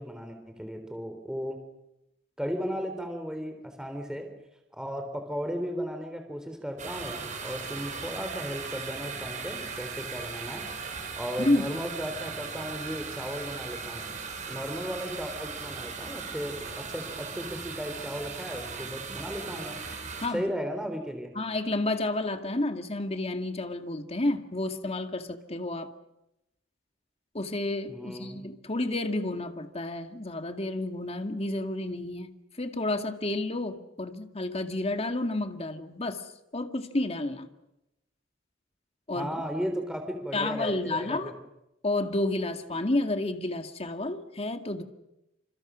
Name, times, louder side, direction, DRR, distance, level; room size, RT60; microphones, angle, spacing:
voice 1, 0.0-1.6 2.4-4.3 4.7-10.7 11.2-14.1 14.5-19.8 20.3-21.3 27.9-28.5 39.2-41.4, equal, 5° right, 5 dB, 3.6 m, -35 dB
sound 1, 6.8-20.3, right 5 dB, 40° right, 5.8 m, -38 dB
voice 2, 11.4-11.7 20.2-20.5 21.4-25.9 27.3-32.3 32.6-36.2 36.5-37.5 39.1-39.4 40.3-41.3 41.8-44.8, left 2 dB, 30° left, 6 dB, 2.1 m, -30 dB
29.5 x 27.5 x 6.3 m, 0.89 s
head